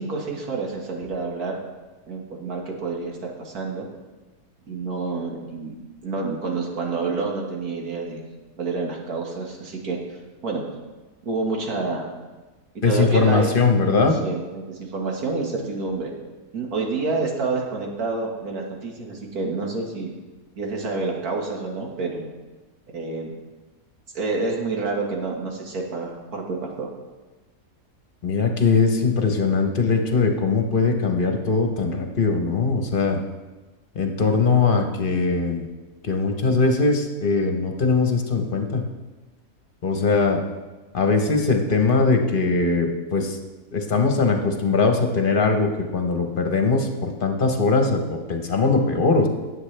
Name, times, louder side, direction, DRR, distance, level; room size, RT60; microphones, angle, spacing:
voice 1, 0.0-1.6 2.1-3.8 4.7-5.8 6.0-8.2 8.6-10.0 10.4-10.6 11.2-12.1 12.8-13.5 13.8-16.1 16.5-20.1 20.6-22.3 22.9-23.3 24.1-26.9, right 3 dB, 85° right, 0 dB, 2.2 m, -28 dB
voice 2, 12.8-14.1 28.2-33.2 33.9-35.6 36.0-38.8 39.8-40.4 40.9-43.4 43.7-49.3, left 4 dB, 40° left, 4 dB, 1.1 m, -21 dB
18.0 x 7.9 x 3.4 m, 1.2 s
omnidirectional pair, 1.5 m